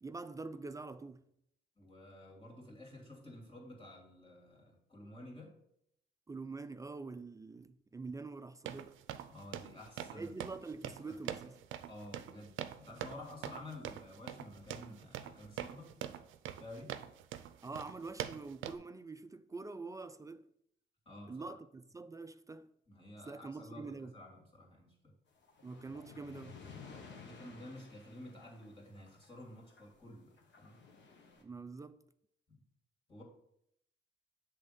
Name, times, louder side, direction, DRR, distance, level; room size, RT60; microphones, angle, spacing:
voice 1, 0.0-1.2 6.3-9.0 10.1-11.6 17.6-20.5 21.3-22.7 23.3-24.2 25.6-26.6 31.4-32.0, right 3 dB, 15° right, 0.3 m, -45 dB
voice 2, 1.8-5.5 9.3-10.3 11.3-11.4 11.9-15.9 16.6-17.0 21.1-21.5 22.9-23.8 24.1-25.1 27.3-30.8 32.5-32.6 33.1-33.2, left 1 dB, 25° left, 2.7 m, -51 dB
sound 1, 8.7-18.8, right 11 dB, 80° right, 0.5 m, -44 dB
sound 2, 25.3-30.0 30.3-31.4, left 5 dB, 65° left, 1.4 m, -55 dB
7.7 x 3.5 x 5.2 m
cardioid pair, 90°, 20 cm